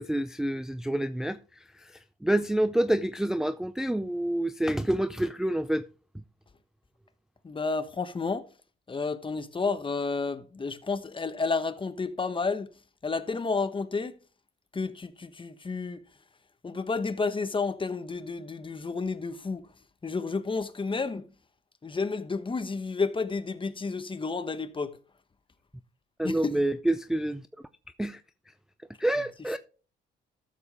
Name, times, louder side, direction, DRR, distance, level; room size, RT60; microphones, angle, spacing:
voice 1, 0.0-5.8 26.2-27.5 28.0-28.2 29.0-29.6, right 1 dB, 5° right, 0.4 m, -28 dB
voice 2, 7.4-8.5 8.9-12.7 13.0-14.2 14.7-16.0 16.6-19.7 20.0-21.3 21.8-25.0 26.2-26.6, left 4 dB, 25° left, 1.1 m, -31 dB
13.5 x 7.2 x 3.5 m
cardioid pair, 90°, 20 cm